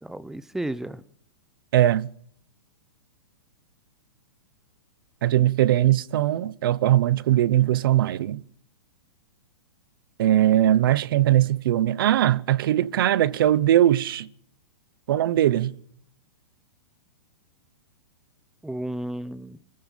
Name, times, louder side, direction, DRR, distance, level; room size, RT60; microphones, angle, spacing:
voice 1, 0.0-1.0 18.6-19.6, right 1 dB, 5° right, 0.7 m, -33 dB
voice 2, 1.7-2.1 5.2-8.4 10.2-14.3 15.1-15.7, right 12 dB, 60° right, 1.0 m, -20 dB
24.0 x 15.5 x 7.3 m
hypercardioid pair, 155°, 13 cm